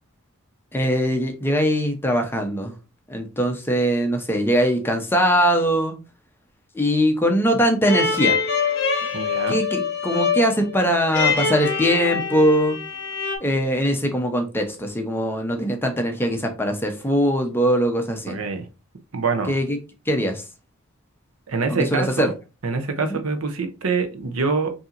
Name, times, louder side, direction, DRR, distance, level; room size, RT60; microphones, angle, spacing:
voice 1, 0.7-2.7 3.1-6.0 6.7-8.4 9.5-12.8 13.4-18.4 19.5-19.8 20.1-20.4 21.7-22.3 23.0-23.2, equal, 10° left, 0.7 m, -21 dB
sound 1, 7.8-13.4, left 5 dB, 55° left, 0.9 m, -24 dB
voice 2, 9.1-9.6 18.3-18.7 19.1-19.6 21.5-22.3 22.6-24.7, right 4 dB, 80° right, 0.7 m, -25 dB
5.5 x 2.8 x 2.5 m
head